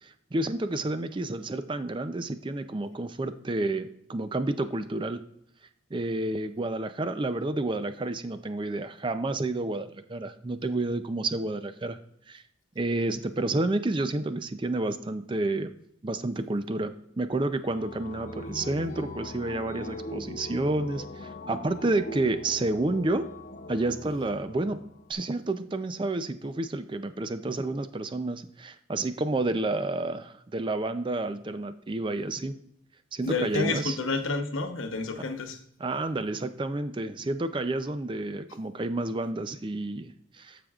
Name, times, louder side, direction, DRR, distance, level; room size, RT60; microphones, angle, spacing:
voice 1, 0.0-5.2 5.9-12.0 12.3-12.4 12.8-15.7 16.0-23.2 23.7-24.8 25.1-32.6 33.1-34.0 35.8-40.6, right 2 dB, 25° right, 10 dB, 0.4 m, -30 dB
sound 1, 17.6-25.1, left 1 dB, 40° left, 0.5 m, -41 dB
voice 2, 33.2-35.6, left 3 dB, 80° left, 6 dB, 0.9 m, -29 dB
14.5 x 5.1 x 2.4 m, 0.73 s
head